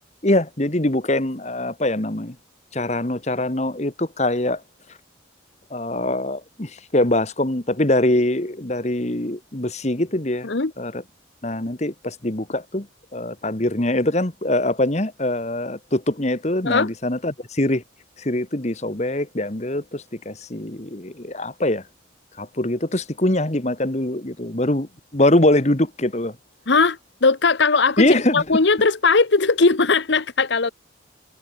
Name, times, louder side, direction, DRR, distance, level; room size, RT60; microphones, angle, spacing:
voice 1, 0.2-2.4 2.7-4.6 5.7-10.5 10.8-11.0 11.4-12.9 13.1-17.8 18.2-21.8 22.4-24.9 25.1-26.4 28.0-28.4, left 1 dB, 35° left, 1.7 m, -23 dB
voice 2, 26.7-30.7, left 4 dB, 65° left, 1.0 m, -19 dB
head